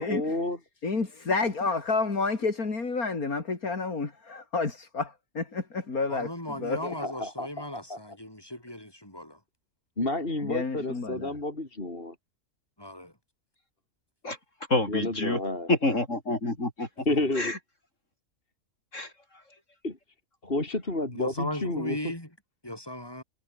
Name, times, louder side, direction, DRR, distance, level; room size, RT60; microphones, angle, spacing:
voice 1, 0.0-0.6 6.8-8.0 10.0-12.1 14.9-15.7 17.1-17.5 19.8-20.0 20.4-22.0, left 2 dB, 40° left, 4.2 m, -30 dB
voice 2, 0.8-6.8 10.4-11.3, left 4 dB, 80° left, 3.5 m, -30 dB
voice 3, 6.1-9.4 12.8-13.1 17.1-17.2 21.1-22.3 22.6-23.2, left 1 dB, 15° left, 6.6 m, -37 dB
voice 4, 14.7-15.4 15.7-16.9 17.4-17.6 18.9-19.1, left 2 dB, 55° left, 5.9 m, -27 dB
omnidirectional pair, 1.5 m